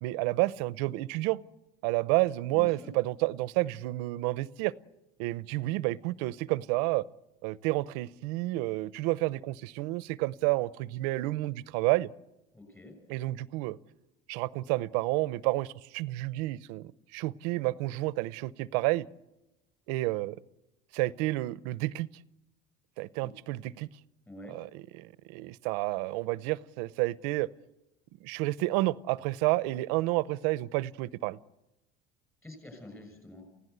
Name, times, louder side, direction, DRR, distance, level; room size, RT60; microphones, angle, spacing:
voice 1, 0.0-1.4 1.8-4.7 5.2-7.0 7.4-12.1 13.1-13.8 14.3-19.1 19.9-20.4 20.9-22.1 23.0-23.9 24.5-27.5 28.2-31.4, right 19 dB, 90° right, 0.7 m, -30 dB
voice 2, 2.5-2.9 12.5-13.0 23.2-23.3 24.3-24.5 32.4-33.4, left 1 dB, 10° left, 6.6 m, -47 dB
29.5 x 16.5 x 8.1 m
cardioid pair, 170°, 20 cm